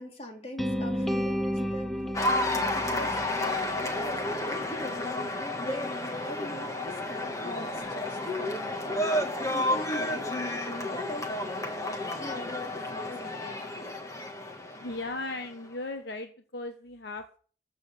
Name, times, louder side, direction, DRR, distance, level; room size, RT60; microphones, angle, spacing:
voice 1, 0.0-2.0 2.6-4.5 4.7-5.2 5.5-13.9, left 1 dB, 35° left, 2 dB, 2.9 m, -42 dB
sound 1, 0.6-4.7, equal, ahead, 0.9 m, -33 dB
Cheering / Applause, 2.1-15.5, left 1 dB, 20° left, 1.6 m, -31 dB
voice 2, 14.8-17.4, left 2 dB, 65° left, 6 dB, 1.1 m, -37 dB
13.5 x 7.5 x 5.6 m, 0.41 s
head